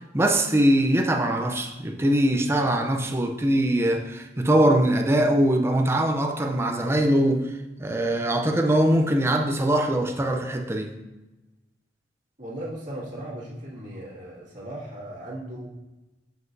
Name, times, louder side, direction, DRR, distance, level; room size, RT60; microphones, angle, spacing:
voice 1, 0.1-7.5 7.8-10.9, right 1 dB, 15° right, 0.6 m, -22 dB
voice 2, 12.4-15.7, right 1 dB, 45° right, 2.2 m, -37 dB
7.2 x 6.0 x 2.7 m
head